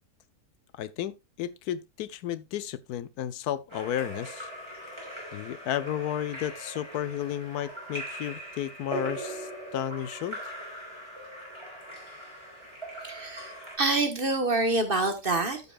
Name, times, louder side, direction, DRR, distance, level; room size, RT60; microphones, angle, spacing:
voice 1, 0.7-4.5 5.3-10.4, left 11 dB, 85° left, 1.2 m, -33 dB
Splash splatter / Drip / Trickle dribble, 3.7-13.8, right 1 dB, 15° right, 4.5 m, -40 dB
voice 2, 13.0-13.5 13.8-15.6, right 2 dB, 35° right, 1.6 m, -26 dB
14.5 x 6.9 x 2.4 m
omnidirectional pair, 1.6 m